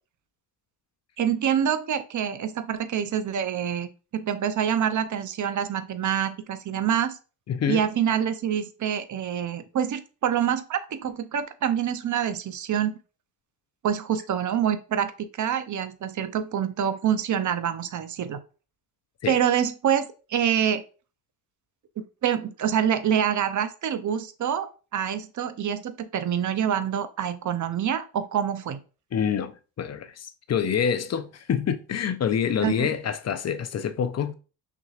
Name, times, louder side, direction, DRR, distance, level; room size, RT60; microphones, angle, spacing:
voice 1, 1.2-7.2 7.7-12.9 13.8-18.4 19.3-20.8 22.0-28.8 32.6-32.9, right 9 dB, 40° right, 0.6 m, -26 dB
voice 2, 7.5-7.8 19.2-19.4 29.1-29.5 29.8-34.3, left 8 dB, 35° left, 0.5 m, -26 dB
5.9 x 2.9 x 2.4 m
cardioid pair, 85°, 47 cm